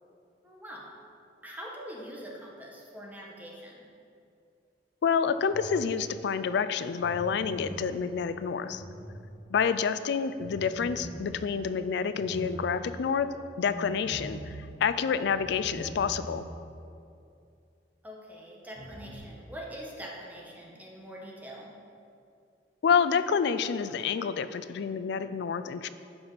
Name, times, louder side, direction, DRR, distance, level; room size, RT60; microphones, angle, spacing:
voice 1, 0.4-0.9 1.4-3.8 18.0-21.7, equal, 10° right, -3 dB, 1.2 m, -43 dB
voice 2, 5.0-8.8 9.5-13.3 13.6-16.5 22.8-25.9, left 6 dB, 65° left, 13 dB, 0.4 m, -28 dB
sound 1, 5.5-6.2 7.0-9.7 10.4-16.6 16.9-17.0 18.8-19.2, equal, 25° left, 1.2 m, -43 dB
11.5 x 5.1 x 4.0 m, 2.5 s
head